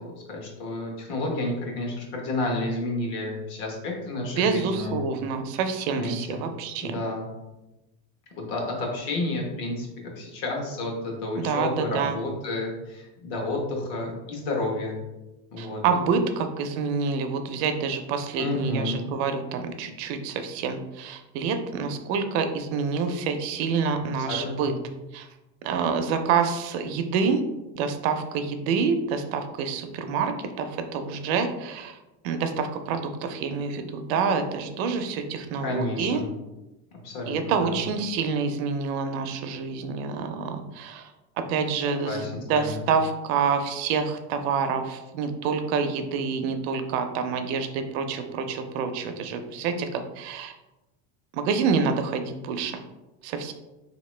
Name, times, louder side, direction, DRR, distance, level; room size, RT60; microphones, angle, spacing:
voice 1, 0.0-5.0 5.9-6.4 6.8-7.3 8.4-15.0 15.5-15.8 18.4-19.1 24.2-24.7 35.6-36.3 36.9-37.8 41.7-42.8, left 2 dB, 65° left, 0 dB, 1.2 m, -31 dB
voice 2, 4.3-7.0 11.4-12.2 15.6-24.7 25.1-25.3 25.6-27.4 27.7-32.0 32.2-36.2 37.3-41.1 41.4-50.5 51.3-52.8 53.2-53.5, right 5 dB, 65° right, 7 dB, 0.5 m, -27 dB
3.8 x 2.9 x 3.2 m, 1.0 s
cardioid pair, 170°, 35 cm